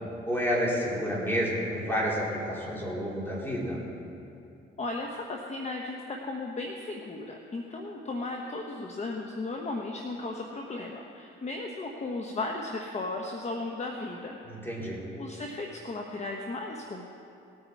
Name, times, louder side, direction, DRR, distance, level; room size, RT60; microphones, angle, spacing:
voice 1, 0.2-3.8 14.4-15.0, equal, 10° left, -4 dB, 3.6 m, -30 dB
voice 2, 4.8-14.4 15.1-17.0, left 2 dB, 35° left, 1 dB, 1.1 m, -35 dB
18.5 x 9.1 x 4.6 m, 2.6 s
cardioid pair, 90°, 20 cm